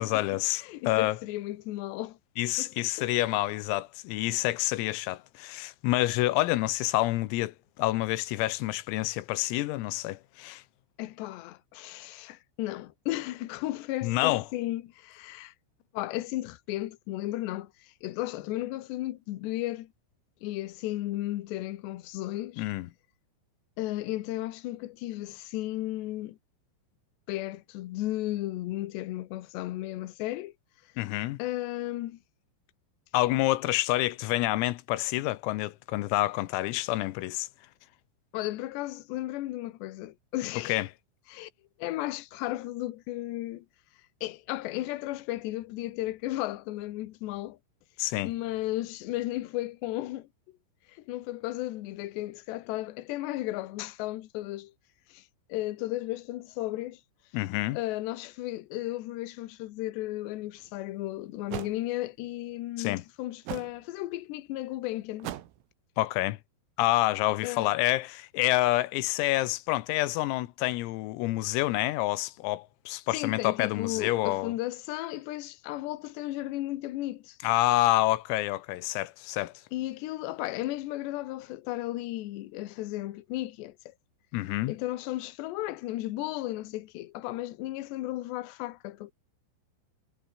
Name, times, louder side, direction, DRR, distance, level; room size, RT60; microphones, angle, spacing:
voice 1, 0.0-1.2 2.4-10.6 14.0-14.5 22.6-22.9 31.0-31.4 33.1-37.5 40.7-40.9 48.0-48.3 57.3-57.8 62.8-63.0 66.0-66.4 66.8-74.5 77.4-79.5 84.3-84.7, left 18 dB, 85° left, 3.8 m, -28 dB
voice 2, 0.5-2.2 2.6-3.1 11.0-15.5 15.9-19.9 20.4-22.7 23.8-26.4 27.3-30.5 31.4-32.2 38.3-40.8 41.3-41.5 41.8-43.7 44.2-47.6 48.2-50.3 50.9-54.7 55.1-55.2 55.5-57.0 57.7-65.3 67.4-67.7 73.1-77.4 79.7-83.8 84.7-89.1, left 16 dB, 70° left, 3.0 m, -34 dB
sound 1, 60.6-60.7 61.5-61.8 63.5-63.8 65.2-65.6, right 13 dB, 90° right, 4.6 m, -37 dB
omnidirectional pair, 6.0 m